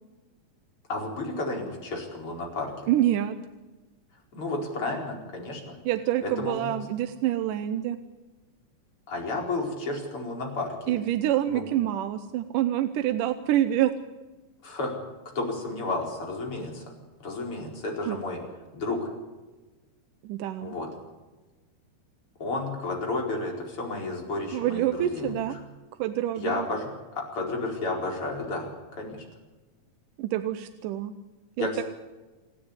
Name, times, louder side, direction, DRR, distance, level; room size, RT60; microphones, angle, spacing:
voice 1, 0.9-2.7 4.3-5.8 6.2-6.8 9.1-11.0 11.5-11.6 14.6-14.9 15.4-16.8 17.2-18.4 18.7-19.1 20.6-20.9 22.4-25.4 26.4-26.9 27.3-29.2 31.6-31.8, left 2 dB, 40° left, 0 dB, 5.4 m, -32 dB
voice 2, 2.9-3.4 5.9-8.0 10.9-13.9 18.1-18.2 20.2-20.7 24.5-25.6 26.0-26.7 30.2-31.1 31.6-31.8, right 12 dB, 80° right, 10 dB, 2.3 m, -26 dB
27.5 x 10.0 x 9.7 m, 1.2 s
omnidirectional pair, 3.8 m